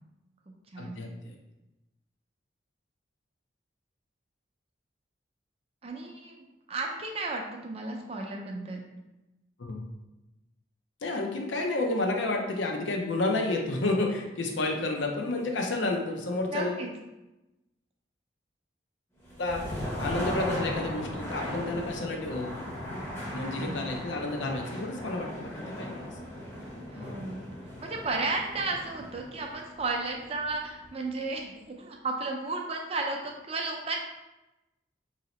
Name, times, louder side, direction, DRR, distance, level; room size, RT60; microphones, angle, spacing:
voice 1, 0.8-1.3 9.6-9.8 11.0-16.8 19.4-22.6 23.3-25.5 25.8-26.1 27.0-27.1, left 2 dB, 75° left, 2 dB, 0.6 m, -30 dB
voice 2, 5.8-6.4 6.7-8.8 16.5-16.9 23.4-23.8 26.9-27.4 27.8-34.0, right 3 dB, 30° right, 1 dB, 0.4 m, -33 dB
sound 1, 19.2-31.1, equal, 15° left, 0.7 m, -38 dB
2.9 x 2.8 x 4.1 m, 0.99 s
head